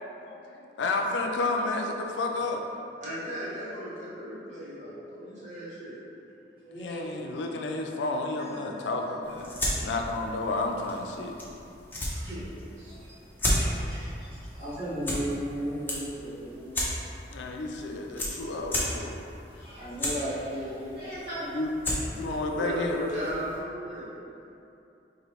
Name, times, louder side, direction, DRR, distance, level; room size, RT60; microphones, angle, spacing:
voice 1, 0.2-2.7 6.7-11.4 17.3-19.2 19.5-19.6 21.5-21.7 22.2-23.0, left 2 dB, 85° left, 2 dB, 0.4 m, -31 dB
voice 2, 3.0-6.0 12.0-12.4 12.8-13.1 22.6-24.1, equal, 40° right, -8 dB, 0.8 m, -36 dB
voice 3, 6.6-7.2 8.4-8.5 8.8-8.9 12.2-12.3 12.9-13.0 13.4-16.7 19.5-21.5, equal, 25° right, -17 dB, 1.4 m, -36 dB
sound 1, 9.2-23.6, left 1 dB, 10° left, 0.5 m, -35 dB
4.3 x 2.6 x 3.0 m, 2.7 s
head